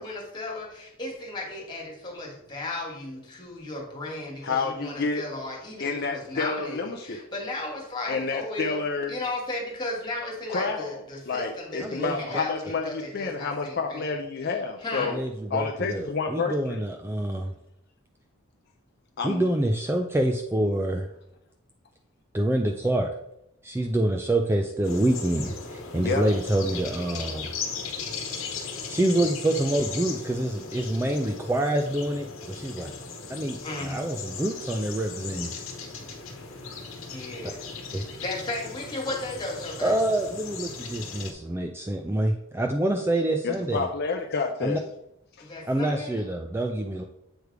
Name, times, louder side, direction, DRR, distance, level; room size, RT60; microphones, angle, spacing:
voice 1, 0.0-14.1 14.8-15.1 33.6-34.1 37.1-37.7 38.2-39.9 45.4-46.2, left 2 dB, 20° left, -1 dB, 1.7 m, -35 dB
voice 2, 4.4-5.2 5.8-7.2 8.1-9.2 10.5-11.0 11.3-15.2 15.5-16.8 19.2-19.5 25.9-26.3 43.4-44.8 45.4-45.5, left 4 dB, 50° left, 3 dB, 0.5 m, -29 dB
voice 3, 11.8-12.2 15.1-17.5 19.2-21.1 22.3-23.1 23.6-27.5 28.9-32.9 33.3-35.5 37.9-38.0 39.8-43.9 44.6-44.8 45.6-47.0, right 1 dB, 10° right, 3 dB, 0.3 m, -26 dB
sound 1, 24.8-41.3, left 5 dB, 70° left, 1.1 m, -37 dB
7.9 x 3.3 x 4.7 m, 0.82 s
head